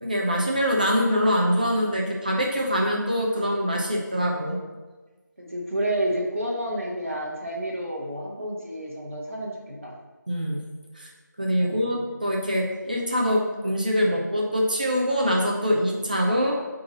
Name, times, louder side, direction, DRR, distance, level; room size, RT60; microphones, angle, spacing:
voice 1, 0.0-4.6 10.3-10.6 10.9-11.1 11.4-16.6, equal, 25° right, -1 dB, 0.7 m, -24 dB
voice 2, 5.4-10.0 11.6-12.0, right 1 dB, 45° right, -3 dB, 1.3 m, -30 dB
7.6 x 4.0 x 4.0 m, 1.3 s
figure-of-eight pair, 170°, 10 cm